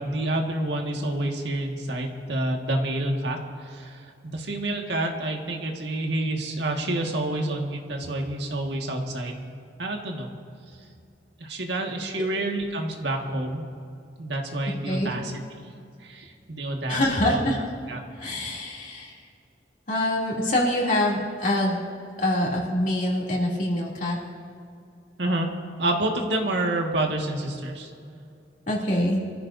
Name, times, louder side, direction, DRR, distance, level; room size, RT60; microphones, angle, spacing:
voice 1, 0.0-4.0 4.2-9.4 9.8-10.3 11.4-13.7 14.2-15.3 16.0-17.4 17.9-18.0 25.2-25.5 25.8-27.9, right 1 dB, 75° right, 1 dB, 1.8 m, -28 dB
voice 2, 16.9-17.6 18.1-19.2 19.9-21.8 22.2-24.2 28.7-29.2, left 1 dB, 45° left, -4 dB, 2.9 m, -25 dB
24.5 x 14.5 x 2.7 m, 2.5 s
head